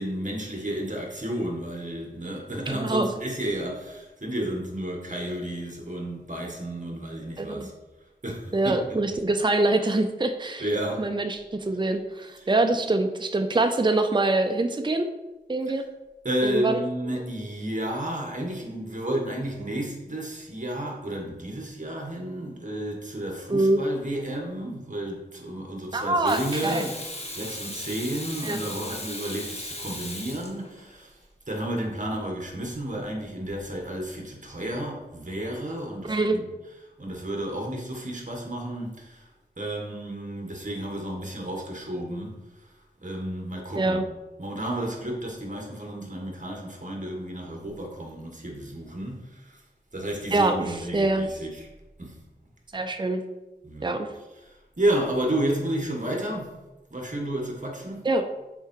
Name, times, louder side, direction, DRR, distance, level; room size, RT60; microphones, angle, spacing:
voice 1, 0.0-7.7 8.2-9.0 10.6-11.1 12.4-12.5 16.2-27.0 27.3-31.2 31.5-36.4 37.0-39.3 39.6-42.8 43.0-44.1 44.4-49.6 49.9-51.7 52.0-52.2 53.6-54.0 54.4-56.5 56.9-58.1, right 1 dB, 45° right, 0 dB, 1.8 m, -32 dB
voice 2, 2.7-3.1 7.4-7.7 8.5-10.6 11.0-15.1 15.5-15.8 16.4-16.8 23.5-23.8 25.9-26.8 28.4-28.6 36.1-36.4 43.8-44.0 50.3-51.3 52.7-53.2 53.8-54.1 58.0-58.2, right 2 dB, 25° right, 7 dB, 0.6 m, -24 dB
Water tap faucet / Sink (filling or washing), 26.3-31.0 33.4-33.6, left 1 dB, 35° left, 1.5 m, -37 dB
7.1 x 4.7 x 4.6 m, 1.1 s
wide cardioid pair, 45°, 18 cm